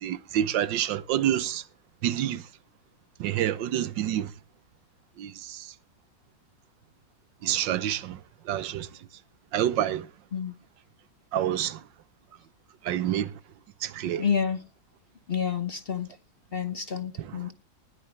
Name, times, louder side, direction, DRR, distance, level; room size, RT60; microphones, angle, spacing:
voice 1, 0.0-1.6 2.0-2.4 3.2-4.3 5.2-5.7 7.4-8.2 8.5-8.9 9.5-10.1 11.3-11.8 12.8-13.3 13.8-14.2 17.2-17.4, right 11 dB, 90° right, 1.5 m, -27 dB
voice 2, 14.2-14.6 15.3-16.1 16.5-17.5, left 7 dB, 40° left, 0.9 m, -29 dB
19.5 x 9.6 x 3.2 m
omnidirectional pair, 2.0 m